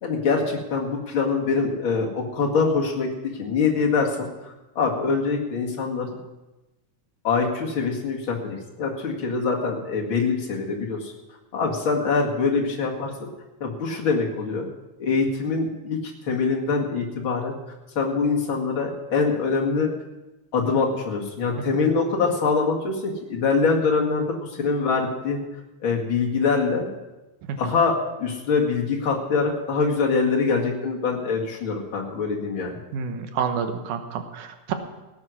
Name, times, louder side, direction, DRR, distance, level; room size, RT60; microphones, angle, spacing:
voice 1, 0.0-4.3 4.8-6.2 7.2-11.1 11.5-13.1 13.6-14.6 15.0-17.5 18.0-19.9 20.5-25.4 25.8-26.9 27.6-32.8, left 4 dB, 45° left, -1 dB, 2.6 m, -24 dB
voice 2, 32.9-34.7, right 6 dB, 85° right, 7 dB, 2.6 m, -28 dB
17.0 x 9.6 x 6.3 m, 1.1 s
omnidirectional pair, 3.4 m